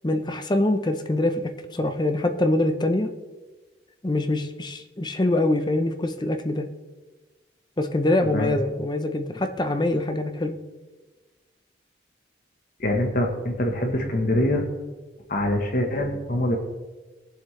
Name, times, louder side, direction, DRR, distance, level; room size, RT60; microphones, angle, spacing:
voice 1, 0.0-3.1 4.0-6.7 7.8-10.6, left 1 dB, 25° left, 7 dB, 0.7 m, -24 dB
voice 2, 8.2-8.6 12.8-14.6 15.3-16.6, left 1 dB, 50° left, 2 dB, 1.2 m, -24 dB
20.0 x 7.5 x 3.3 m, 1.2 s
head